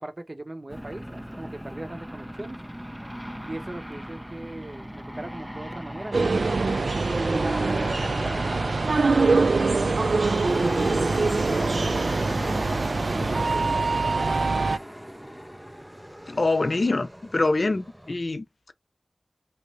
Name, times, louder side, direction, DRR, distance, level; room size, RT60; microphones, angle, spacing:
voice 1, 0.0-2.6 3.4-6.8 7.4-8.4 8.9-12.7 13.1-14.7, right 1 dB, 40° right, 0.7 m, -39 dB
Aircraft, 0.7-18.1, equal, 5° right, 0.4 m, -36 dB
sound 1, 6.1-14.8, right 3 dB, 75° right, 0.3 m, -24 dB
voice 2, 16.3-18.7, left 2 dB, 55° left, 0.5 m, -25 dB
3.0 x 2.6 x 3.0 m
wide cardioid pair, 55°, 0 cm